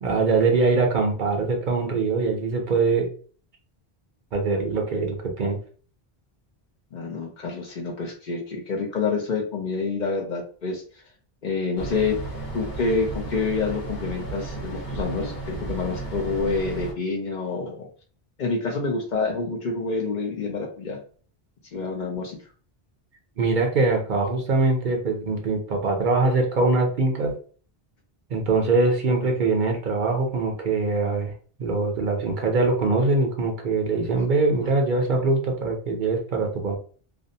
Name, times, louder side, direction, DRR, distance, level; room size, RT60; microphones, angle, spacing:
voice 1, 0.0-3.1 4.3-5.6 23.4-27.3 28.3-31.3 31.6-36.8, right 3 dB, 55° right, 2 dB, 0.7 m, -23 dB
voice 2, 6.9-10.8 11.4-12.2 12.5-17.9 18.4-21.0 21.7-22.4, left 4 dB, 55° left, 0 dB, 0.6 m, -27 dB
sound 1, 11.8-16.9, right 3 dB, 80° left, 1.1 m, -34 dB
2.5 x 2.0 x 2.6 m, 0.42 s
omnidirectional pair, 1.0 m